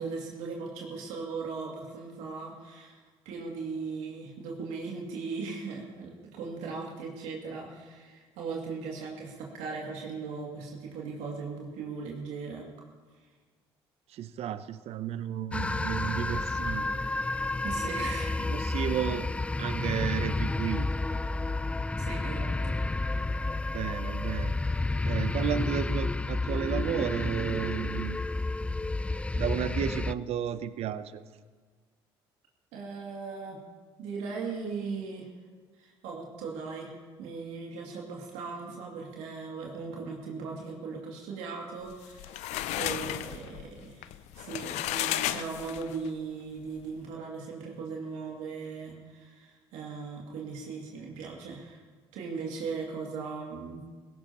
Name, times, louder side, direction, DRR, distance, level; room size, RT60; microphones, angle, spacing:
voice 1, 0.0-3.0 3.2-12.7 17.6-18.4 22.0-22.7 32.7-33.6 34.0-35.3 35.8-51.8 52.1-53.8, right 4 dB, 80° right, -2 dB, 2.5 m, -38 dB
voice 2, 14.1-17.0 18.5-19.3 19.6-20.9 23.7-24.5 25.0-28.2 29.4-31.2, right 10 dB, 60° right, 13 dB, 0.6 m, -33 dB
sound 1, 15.5-30.1, left 2 dB, 10° left, 0.3 m, -30 dB
sound 2, 41.9-46.1, left 14 dB, 75° left, 0.5 m, -33 dB
17.5 x 16.5 x 3.0 m, 1.4 s
supercardioid pair, 70°, 12 cm